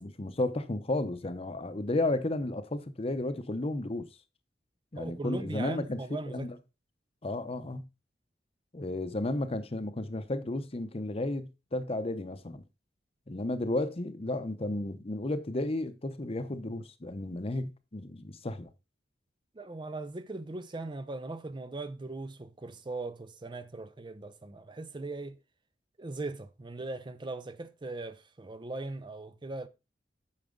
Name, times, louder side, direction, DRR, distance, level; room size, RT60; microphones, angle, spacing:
voice 1, 0.0-4.1 4.9-6.0 6.3-6.6 7.2-7.8 8.7-12.6 13.3-18.7, left 2 dB, 35° left, 0.8 m, -33 dB
voice 2, 4.9-6.5 19.5-25.4 26.0-29.7, right 2 dB, 25° right, 0.5 m, -39 dB
8.6 x 6.0 x 3.8 m
head